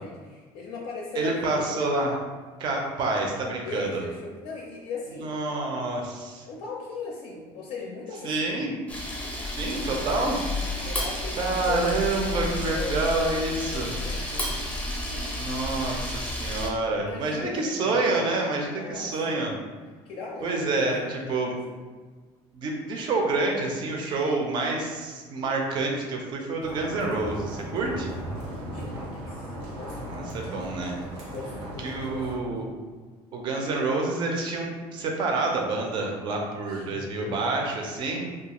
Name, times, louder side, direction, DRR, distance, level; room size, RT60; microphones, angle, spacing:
voice 1, 0.0-1.9 3.6-5.3 6.4-8.7 10.8-14.6 16.9-18.1 18.7-19.4 20.1-21.9 28.7-30.4 31.3-32.5 36.7-37.4, left 4 dB, 60° left, -2 dB, 0.4 m, -39 dB
voice 2, 1.2-2.1 2.6-4.0 5.2-6.4 8.2-8.7 9.4-10.4 11.4-13.9 15.4-19.5 20.4-21.6 22.5-28.1 30.1-31.0 31.8-32.7 33.3-38.3, right 3 dB, 45° right, 1 dB, 0.5 m, -28 dB
Camera, 8.9-16.7, left 1 dB, 10° left, 0.6 m, -31 dB
sound 1, 26.6-32.4, right 1 dB, 85° right, 0.8 m, -37 dB
2.3 x 2.3 x 2.9 m, 1.4 s
cardioid pair, 145°, 10 cm